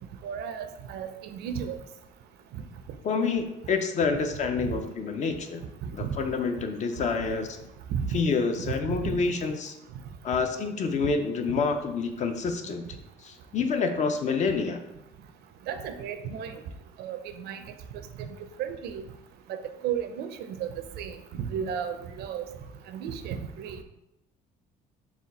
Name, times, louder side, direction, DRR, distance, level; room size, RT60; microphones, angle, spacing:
voice 1, 0.2-1.8 2.5-2.6 4.7-4.8 5.8-6.1 7.9-8.1 8.6-9.2 15.7-16.6 17.0-17.6 18.2-18.3 18.6-19.0 19.5-20.3 20.6-20.7 21.0-22.4 22.9-23.8, right 8 dB, 75° right, 8 dB, 0.5 m, -33 dB
voice 2, 3.0-5.6 5.9-7.5 8.1-9.8 10.2-12.8 13.2-14.8, left 4 dB, 45° left, 6 dB, 0.5 m, -28 dB
4.2 x 2.3 x 4.1 m, 0.87 s
cardioid pair, 110°, 17 cm